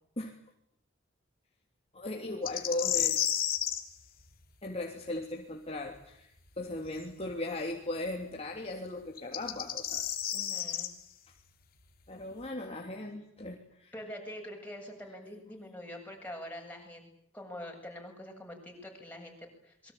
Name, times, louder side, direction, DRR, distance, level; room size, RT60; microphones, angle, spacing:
voice 1, 1.9-3.2 4.6-6.3 6.6-10.0 12.1-13.9, left 2 dB, 30° left, 0 dB, 3.1 m, -37 dB
sound 1, 2.5-3.8 7.0-7.1 9.2-10.9, left 10 dB, 45° left, 3.1 m, -31 dB
voice 2, 10.3-10.9 13.9-17.1 17.3-19.9, left 1 dB, 10° left, 1 dB, 7.8 m, -45 dB
28.0 x 23.5 x 8.8 m, 0.71 s
head